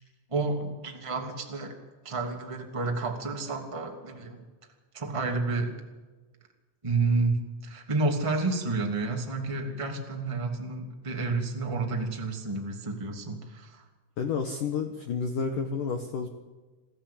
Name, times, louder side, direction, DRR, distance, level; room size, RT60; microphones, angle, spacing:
voice 1, 0.3-1.7 2.0-4.4 4.9-5.7 6.8-13.8, right 3 dB, 10° right, 2 dB, 1.6 m, -30 dB
voice 2, 14.2-16.3, left 5 dB, 70° left, 6 dB, 2.0 m, -30 dB
27.0 x 15.5 x 8.7 m, 1.3 s
omnidirectional pair, 5.8 m